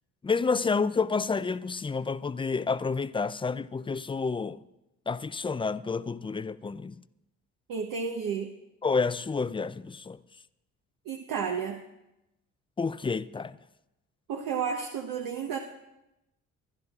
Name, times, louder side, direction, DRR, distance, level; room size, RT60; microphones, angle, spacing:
voice 1, 0.2-4.6 5.1-7.0 8.8-10.2 12.8-13.6, left 4 dB, 15° left, 0.4 m, -29 dB
voice 2, 7.7-8.5 11.1-11.8 14.3-15.6, right 6 dB, 65° right, 1.0 m, -31 dB
23.0 x 11.0 x 2.4 m
supercardioid pair, 60°, 36 cm